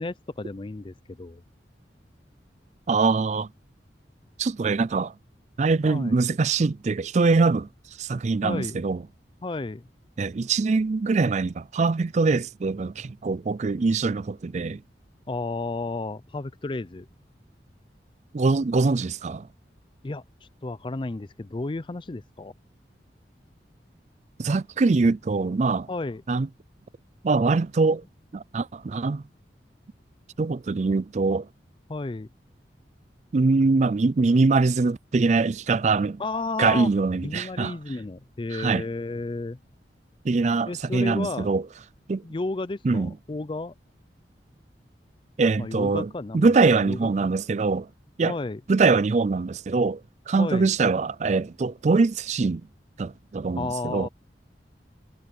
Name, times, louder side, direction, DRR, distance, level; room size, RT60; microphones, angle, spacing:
voice 1, 0.0-1.4 5.9-6.2 8.4-8.8 9.4-9.9 15.3-17.1 20.0-22.5 25.9-26.2 31.9-32.3 36.2-36.9 37.2-39.6 40.7-41.5 42.2-43.7 45.6-47.0 48.2-48.6 50.4-50.7 53.6-54.1, left 3 dB, 30° left, 0.5 m, -32 dB
voice 2, 2.9-3.5 4.4-5.1 5.6-7.7 8.0-9.0 10.2-14.8 18.3-19.5 24.4-25.9 26.3-26.5 27.2-28.0 28.3-29.2 30.4-31.5 33.3-36.2 36.6-37.7 38.5-38.8 40.2-41.6 42.1-42.2 42.8-43.1 45.4-47.9 48.2-48.3 48.7-50.0 50.3-52.6 53.0-54.1, right 4 dB, 40° right, 0.4 m, -23 dB
head